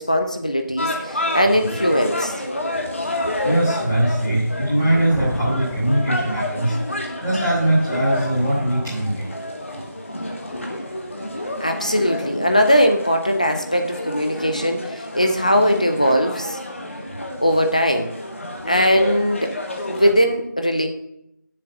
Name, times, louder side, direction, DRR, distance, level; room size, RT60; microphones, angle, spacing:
voice 1, 0.0-2.3 11.6-16.6 17.4-18.1 18.7-19.5 19.9-20.9, equal, 20° left, 5 dB, 0.6 m, -20 dB
sound 1, 0.8-20.1, left 1 dB, 40° left, 1.4 m, -30 dB
voice 2, 3.4-6.7 7.2-9.3, right 1 dB, 5° left, -11 dB, 1.1 m, -21 dB
Thunder, 4.8-7.0, left 1 dB, 90° left, 1.2 m, -34 dB
7.3 x 6.9 x 7.5 m, 0.79 s
figure-of-eight pair, 175°, 11 cm